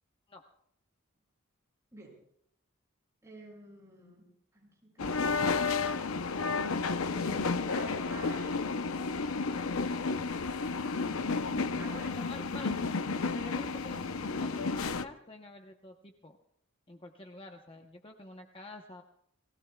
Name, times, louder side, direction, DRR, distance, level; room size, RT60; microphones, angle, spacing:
voice 1, 3.2-5.2 6.3-9.0 11.4-12.2, right 2 dB, 15° right, -3 dB, 7.1 m, -50 dB
sound 1, 5.0-15.0, left 4 dB, 80° left, 0.7 m, -32 dB
voice 2, 12.1-12.7 13.3-16.4 16.9-19.0, left 2 dB, 25° left, 3 dB, 0.9 m, -47 dB
30.0 x 19.5 x 2.3 m, 0.69 s
head